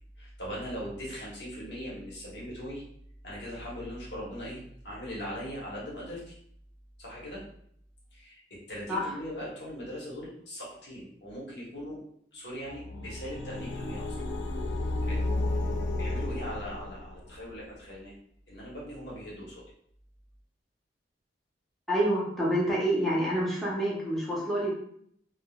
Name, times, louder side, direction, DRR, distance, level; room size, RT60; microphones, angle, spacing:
voice 1, 0.2-2.8 3.2-6.3 7.0-7.5 8.1-12.0 12.3-14.2 15.0-15.2 16.0-18.1 18.5-19.7, equal, 70° left, -5 dB, 1.1 m, -40 dB
sound 1, 12.7-17.3, left 2 dB, 85° left, 0.3 m, -32 dB
voice 2, 21.9-24.7, right 1 dB, ahead, -7 dB, 0.7 m, -27 dB
3.6 x 2.0 x 2.3 m, 0.66 s
head